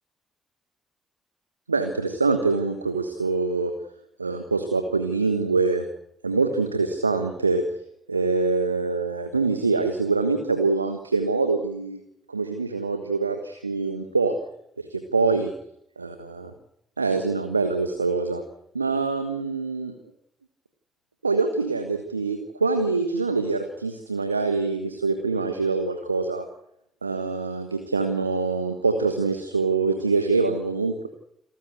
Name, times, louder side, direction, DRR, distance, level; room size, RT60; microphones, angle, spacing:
voice 1, 1.7-3.7 4.2-5.9 6.2-7.6 8.1-12.0 12.3-14.3 14.8-15.5 16.0-16.5 17.0-18.4 18.7-19.9 21.2-26.4 27.0-31.1, right 4 dB, 85° right, 8 dB, 1.3 m, -24 dB
27.5 x 14.0 x 8.1 m, 0.75 s
figure-of-eight pair, 40°, 0 cm